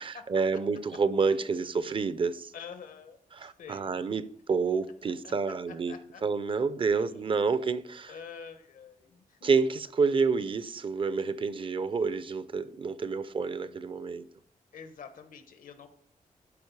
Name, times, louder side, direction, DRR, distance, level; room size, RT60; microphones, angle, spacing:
voice 1, 0.0-2.5 3.3-6.0 6.2-8.1 9.4-14.2, right 4 dB, 40° right, 0.5 m, -29 dB
voice 2, 2.5-4.0 5.0-5.3 5.7-6.3 6.9-7.3 8.1-9.5 14.7-15.9, left 6 dB, 75° left, 1.1 m, -47 dB
12.0 x 5.0 x 4.7 m
wide cardioid pair, 135°, 14 cm